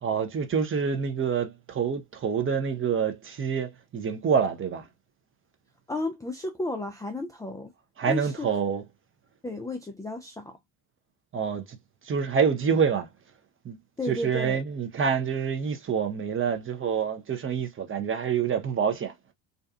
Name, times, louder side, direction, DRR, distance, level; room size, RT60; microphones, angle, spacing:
voice 1, 0.0-4.9 8.0-8.9 11.3-11.8 12.0-13.1 13.6-13.8 14.0-19.1, right 6 dB, 30° right, 0.8 m, -27 dB
voice 2, 5.9-7.7 8.1-8.5 9.4-10.6 14.0-14.6, left 2 dB, 10° left, 0.4 m, -33 dB
2.6 x 2.3 x 2.4 m
hypercardioid pair, 60°, 43 cm